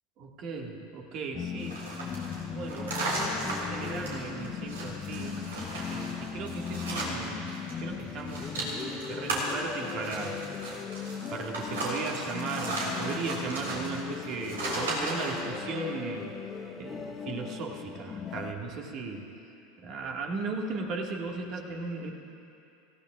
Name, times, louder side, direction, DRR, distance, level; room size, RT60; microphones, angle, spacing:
voice 1, 0.2-1.8 2.5-5.4 5.9-7.5 7.8-10.4 11.3-16.3 16.8-19.3 19.8-22.1, right 4 dB, 45° right, 1 dB, 1.9 m, -36 dB
sound 1, 1.3-18.5, left 7 dB, 30° left, 0.9 m, -38 dB
sound 2, 1.6-7.7 8.0-15.4, right 2 dB, 70° right, 3.9 m, -36 dB
26.5 x 16.0 x 2.5 m, 2.7 s
figure-of-eight pair, 80°, 0 cm